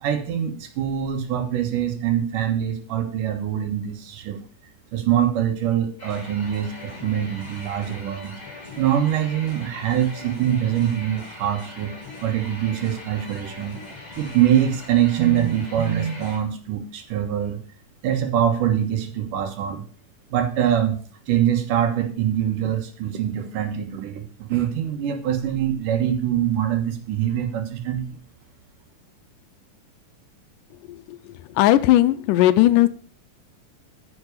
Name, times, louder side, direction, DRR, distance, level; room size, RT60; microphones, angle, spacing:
voice 1, 0.0-4.4 4.9-8.4 8.8-11.9 12.2-13.8 14.2-17.6 18.0-19.8 20.3-21.0 21.3-28.2, right 10 dB, 85° right, 6 dB, 3.0 m, -24 dB
sound 1, 6.0-16.4, left 2 dB, 15° left, 2.6 m, -40 dB
voice 2, 31.6-32.9, left 14 dB, 90° left, 14 dB, 2.2 m, -17 dB
9.8 x 6.3 x 6.5 m, 0.43 s
omnidirectional pair, 3.6 m